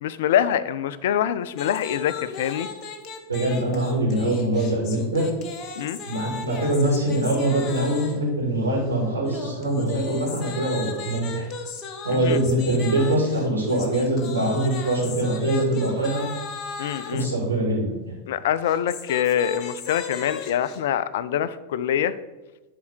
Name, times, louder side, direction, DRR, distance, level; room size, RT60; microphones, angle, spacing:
voice 1, 0.0-2.7 5.8-6.0 12.1-12.4 16.8-17.3 18.3-22.1, left 10 dB, 55° left, 15 dB, 0.4 m, -25 dB
sound 1, 1.5-8.3 9.2-17.3 18.6-20.8, left 5 dB, 35° left, 1.0 m, -36 dB
voice 2, 3.3-5.3 6.0-11.5 12.0-16.3 17.1-17.9, right 1 dB, 75° right, -4 dB, 2.9 m, -23 dB
10.5 x 4.4 x 4.4 m, 1.1 s
figure-of-eight pair, 90°, 0 cm